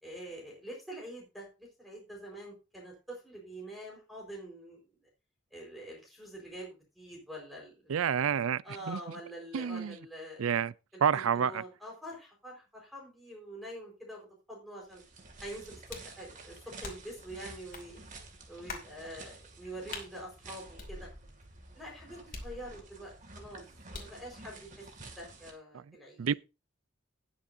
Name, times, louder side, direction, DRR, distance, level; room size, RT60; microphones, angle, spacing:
voice 1, 0.0-4.8 5.5-7.9 8.6-10.5 10.9-15.0 15.4-18.0 18.5-21.1 21.7-23.1 23.4-23.6 23.9-24.8 25.2-26.3, right 1 dB, ahead, 4.7 m, -45 dB
voice 2, 7.9-9.0 9.5-10.0 10.4-10.7 11.0-11.6 25.7-26.3, right 7 dB, 85° right, 0.4 m, -29 dB
sound 1, 14.9-25.5, right 3 dB, 40° right, 2.4 m, -51 dB
sound 2, 15.9-16.2 16.8-17.2 17.7-17.9 18.7-18.9 19.9-20.1 20.8-21.4 22.3-23.0 23.9-24.2, left 3 dB, 40° left, 2.7 m, -44 dB
19.0 x 7.1 x 2.7 m
head